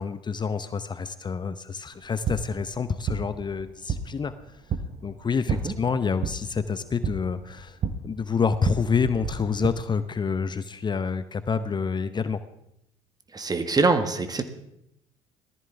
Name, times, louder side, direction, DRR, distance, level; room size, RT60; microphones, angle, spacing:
voice 1, 0.0-4.3 5.0-7.8 8.0-12.4, left 5 dB, 30° left, 12 dB, 0.8 m, -28 dB
sound 1, 1.9-9.7, right 6 dB, 45° right, 1.2 m, -33 dB
voice 2, 13.3-14.4, right 3 dB, 25° right, 9 dB, 1.6 m, -24 dB
19.5 x 14.0 x 3.5 m, 0.80 s
hypercardioid pair, 60°, 15 cm